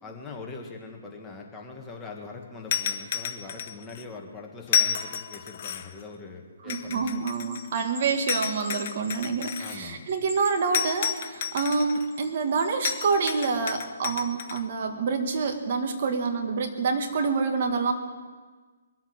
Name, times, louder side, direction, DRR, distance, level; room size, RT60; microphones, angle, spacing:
voice 1, 0.0-7.2 9.6-10.1, left 4 dB, 10° left, 0 dB, 1.7 m, -42 dB
sound 1, 2.7-4.0 4.7-6.0 6.7-7.8 8.3-9.8 10.7-12.1 12.8-14.6, left 8 dB, 45° left, 0.8 m, -31 dB
voice 2, 6.6-17.9, right 4 dB, 50° right, 5 dB, 1.8 m, -27 dB
Bell, 7.3-9.7 10.1-11.6 12.1-13.5, equal, 20° right, 3.3 m, -44 dB
22.5 x 7.9 x 6.7 m, 1.4 s
hypercardioid pair, 150°, 0 cm